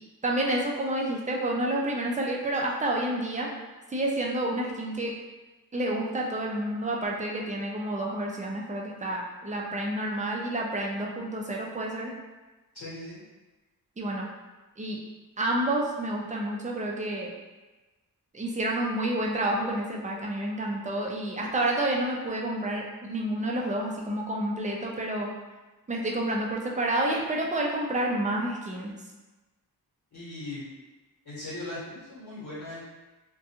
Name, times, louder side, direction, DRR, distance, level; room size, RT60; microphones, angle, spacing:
voice 1, 0.2-3.5 3.9-5.1 5.7-12.1 14.0-14.3 14.8-15.0 15.4-17.3 18.3-25.3 25.9-29.0, right 1 dB, 20° right, -1 dB, 0.4 m, -29 dB
voice 2, 12.7-13.2 30.1-30.7 31.2-32.8, left 2 dB, 70° left, -10 dB, 1.0 m, -39 dB
2.5 x 2.2 x 2.8 m, 1.2 s
wide cardioid pair, 90°, 38 cm